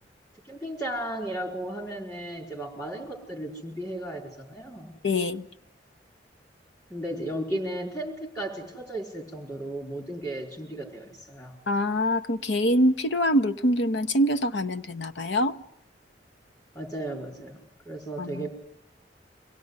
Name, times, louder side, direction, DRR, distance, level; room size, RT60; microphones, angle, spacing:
voice 1, 0.4-5.0 6.9-11.6 16.7-17.6 17.8-18.5, right 1 dB, 20° left, 1 dB, 4.6 m, -35 dB
voice 2, 5.0-5.5 11.7-15.5 18.2-18.5, equal, 85° left, 9 dB, 0.9 m, -24 dB
25.0 x 17.5 x 9.7 m, 0.81 s
head